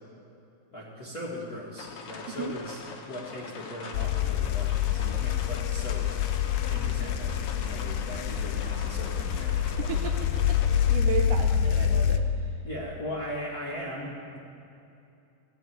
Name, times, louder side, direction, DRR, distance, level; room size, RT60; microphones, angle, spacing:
voice 1, 0.7-2.8 3.1-6.1 6.7-10.0 11.4-11.6 12.6-14.4, left 1 dB, 45° left, -6 dB, 1.2 m, -39 dB
sound 1, 1.8-10.9, left 4 dB, 65° left, 1.4 m, -43 dB
sound 2, 3.9-12.2, left 9 dB, 80° left, 2.3 m, -26 dB
voice 2, 9.8-10.6 10.9-12.3, right 7 dB, 80° right, 4 dB, 1.9 m, -34 dB
16.5 x 5.7 x 9.1 m, 2.7 s
omnidirectional pair, 4.1 m